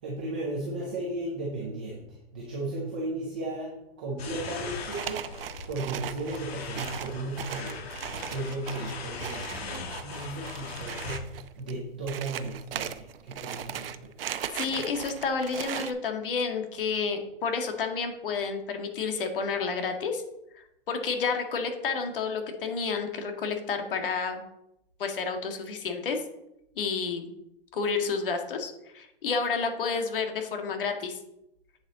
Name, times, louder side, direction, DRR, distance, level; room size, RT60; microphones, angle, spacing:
voice 1, 0.0-5.3 5.7-14.1, right 2 dB, 10° right, -4 dB, 0.4 m, -35 dB
sound 1, 4.2-11.2, left 4 dB, 85° left, 1.7 m, -40 dB
sound 2, 4.7-15.9, right 9 dB, 70° right, 0.7 m, -38 dB
voice 2, 14.5-20.2 20.5-24.4 25.0-26.2 26.8-27.3 27.7-31.2, left 5 dB, 60° left, 5 dB, 1.7 m, -30 dB
8.2 x 6.8 x 3.8 m, 0.84 s
hypercardioid pair, 170°, 30 cm